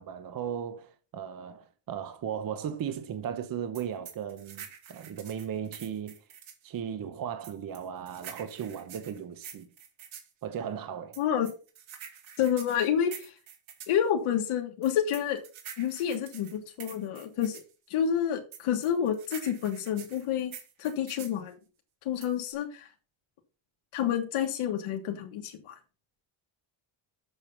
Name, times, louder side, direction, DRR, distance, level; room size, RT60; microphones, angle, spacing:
voice 1, 0.0-6.2 6.6-9.7 10.4-11.2, right 8 dB, 45° right, 1.0 m, -36 dB
sound 1, 3.8-6.7 7.4-10.3 11.1-14.0 14.8-17.7 18.5-21.4 22.2-22.5, right 8 dB, 70° right, 2.3 m, -46 dB
voice 2, 11.2-11.5 12.4-13.3 13.9-15.4 15.8-17.6 17.9-20.5 20.8-21.6 22.0-22.9 23.9-25.7, left 9 dB, 80° left, 1.5 m, -29 dB
8.0 x 6.8 x 5.3 m
cardioid pair, 155°, 48 cm